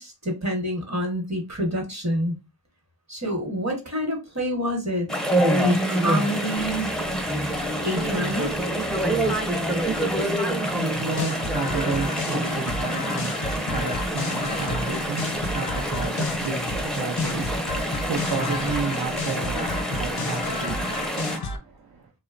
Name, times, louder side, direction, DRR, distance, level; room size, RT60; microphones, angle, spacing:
voice 1, 0.0-2.3 3.1-5.1 5.6-6.9 7.8-8.5, equal, 40° right, 1.0 m, -27 dB
Chatter / Stream, 5.1-21.4, right 1 dB, ahead, 0.5 m, -27 dB
sound 1, 6.6-21.3, equal, 90° right, 0.9 m, -40 dB
voice 2, 10.0-22.1, right 5 dB, 70° right, 0.5 m, -33 dB
sound 2, 11.1-21.6, left 3 dB, 65° left, 0.6 m, -32 dB
2.8 x 2.1 x 2.4 m
wide cardioid pair, 40°, 40 cm